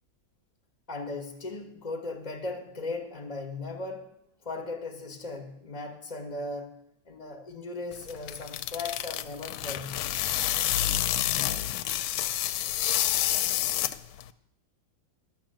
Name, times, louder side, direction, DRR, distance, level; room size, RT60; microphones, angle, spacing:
voice 1, 0.9-4.1 4.4-10.0, left 3 dB, 25° left, 0.9 m, -37 dB
sound 1, 7.9-14.3, left 13 dB, 85° left, 1.4 m, -29 dB
12.0 x 6.3 x 7.7 m
omnidirectional pair, 2.2 m